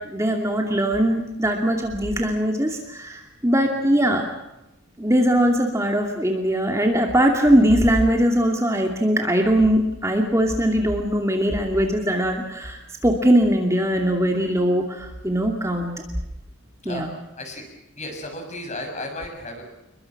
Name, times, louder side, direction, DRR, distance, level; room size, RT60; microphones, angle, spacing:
voice 1, 0.0-4.3 5.0-15.9 16.8-17.1, equal, 15° right, 2 dB, 2.5 m, -21 dB
voice 2, 16.8-17.6 18.0-19.6, left 1 dB, 35° left, 4 dB, 6.8 m, -34 dB
28.5 x 23.0 x 6.0 m, 0.94 s
head